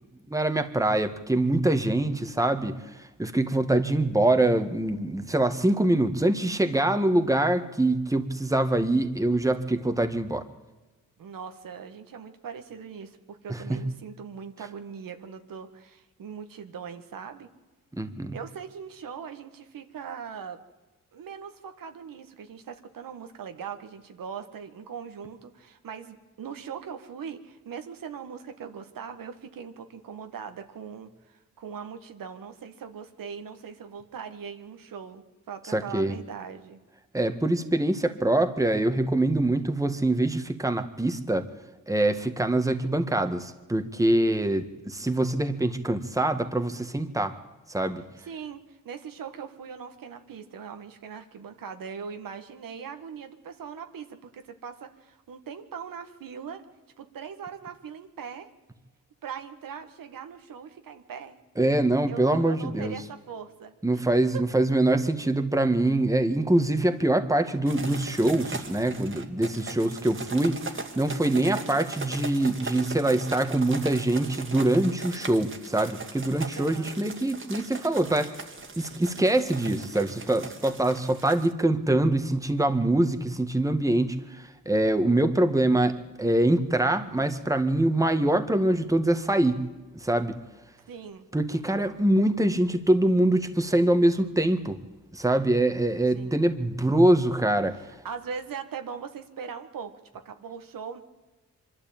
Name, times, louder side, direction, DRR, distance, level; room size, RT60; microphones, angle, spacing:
voice 1, 0.3-10.4 13.5-13.8 18.0-18.4 35.7-36.2 37.1-41.5 41.9-47.4 47.7-48.0 61.6-62.9 63.8-78.5 78.8-89.6 89.9-90.3 91.3-94.8 95.1-97.9, right 1 dB, 10° right, 8 dB, 1.7 m, -24 dB
voice 2, 11.2-17.5 18.3-20.6 21.1-36.8 48.3-56.6 57.0-58.5 59.2-61.4 62.1-63.7 64.3-64.4 67.4-67.5 76.5-77.0 90.9-91.3 96.1-96.4 98.0-101.0, right 6 dB, 80° right, 7 dB, 1.8 m, -40 dB
sound 1, 67.7-81.5, right 3 dB, 40° right, 2.2 m, -39 dB
24.5 x 12.0 x 8.9 m, 1.2 s
cardioid pair, 90°, 33 cm